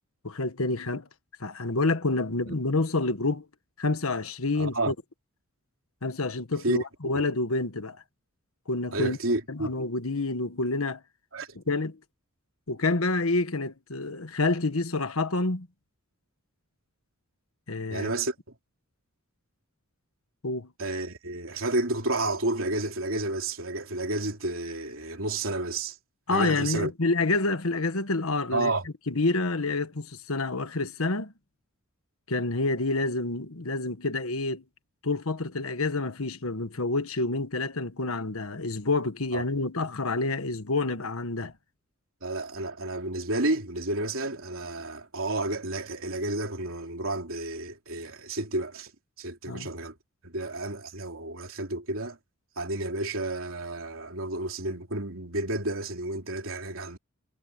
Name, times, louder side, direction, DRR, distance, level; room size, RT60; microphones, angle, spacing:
voice 1, 0.2-1.1 1.4-3.4 3.8-4.9 6.0-8.0 8.7-9.2 9.5-11.0 11.5-12.0 12.7-15.7 17.7-18.1 20.4-20.7 26.3-28.7 29.1-31.3 32.3-34.6 35.0-41.5 49.5-49.7, left 3 dB, 75° left, 1.5 m, -28 dB
voice 2, 4.6-4.9 6.6-6.8 7.1-7.2 8.9-9.7 11.3-11.5 17.9-18.4 20.8-26.0 26.3-26.9 28.5-28.8 39.3-39.4 42.2-48.9 49.2-49.9 50.2-52.2 52.6-57.0, right 2 dB, 65° right, 3.6 m, -31 dB
head